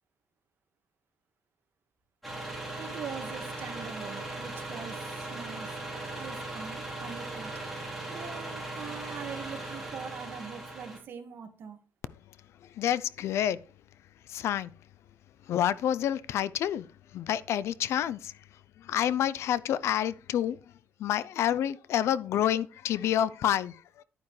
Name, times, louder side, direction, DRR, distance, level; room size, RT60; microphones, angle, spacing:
sound 1, 2.2-11.0, right 2 dB, ahead, 3.5 m, -38 dB
voice 1, 2.8-5.0 5.3-5.7 6.2-7.5 8.1-11.8, right 6 dB, 50° right, 1.7 m, -42 dB
voice 2, 12.6-13.6 14.3-14.7 15.5-16.9 17.1-18.4 18.8-20.7 21.0-24.0, left 10 dB, 70° left, 0.5 m, -28 dB
11.0 x 9.6 x 3.2 m
cardioid pair, 160°, 5 cm